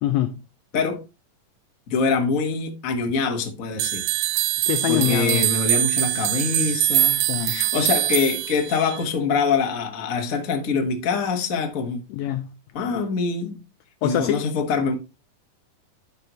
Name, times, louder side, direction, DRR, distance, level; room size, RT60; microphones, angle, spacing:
voice 1, 0.0-0.4 4.7-5.5 7.3-7.7 12.1-12.5 14.0-14.5, left 14 dB, 85° left, 1.5 m, -24 dB
voice 2, 1.9-4.0 4.9-12.0 12.7-13.6 14.0-15.0, left 5 dB, 55° left, 0.9 m, -24 dB
sound 1, 3.8-9.0, right 14 dB, 90° right, 2.2 m, -23 dB
11.0 x 5.5 x 3.0 m
omnidirectional pair, 3.7 m